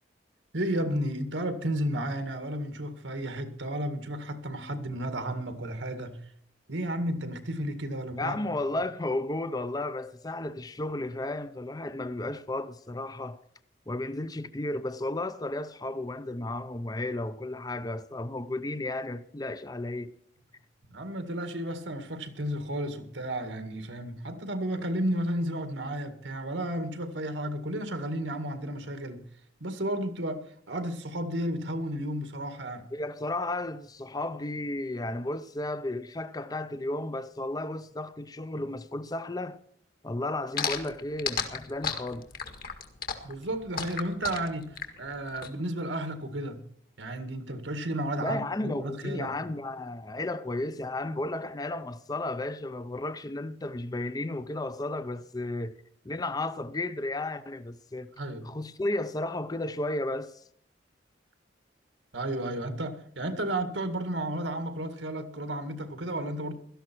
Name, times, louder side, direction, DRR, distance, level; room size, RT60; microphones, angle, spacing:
voice 1, 0.5-6.2 6.7-8.3 20.9-29.2 29.6-32.9 43.2-46.6 47.0-49.4 58.2-58.5 62.1-66.5, right 1 dB, 85° right, 2.0 m, -33 dB
voice 2, 8.2-13.4 13.9-20.1 32.9-39.6 40.0-42.3 48.2-55.8 56.0-58.1 58.4-60.4, left 2 dB, 20° left, 0.6 m, -33 dB
sound 1, 40.6-45.5, left 6 dB, 50° left, 1.9 m, -33 dB
17.0 x 13.0 x 4.5 m
head